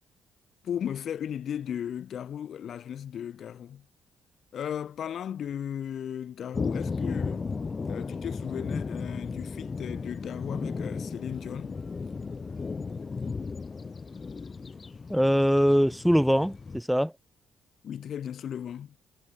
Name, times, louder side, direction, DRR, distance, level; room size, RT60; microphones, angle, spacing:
voice 1, 0.6-3.9 4.5-7.5 7.9-11.8 17.8-19.0, left 9 dB, 60° left, 5.1 m, -36 dB
sound 1, 6.5-16.8, left 4 dB, 35° left, 7.0 m, -35 dB
voice 2, 15.1-17.1, equal, ahead, 5.8 m, -22 dB
cardioid pair, 90°, 0 cm